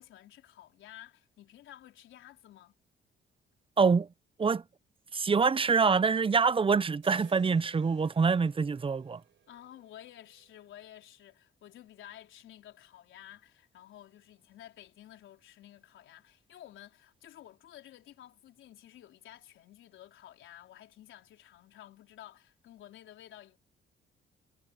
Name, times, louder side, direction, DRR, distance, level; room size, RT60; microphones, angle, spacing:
voice 1, 0.0-2.8 9.5-23.6, left 12 dB, 80° left, 4.1 m, -52 dB
voice 2, 3.8-4.1 4.4-4.6 5.1-9.2, right 5 dB, 25° right, 0.7 m, -25 dB
sound 1, 7.0-11.1, right 10 dB, 65° right, 7.4 m, -60 dB
cardioid pair, 90°, 20 cm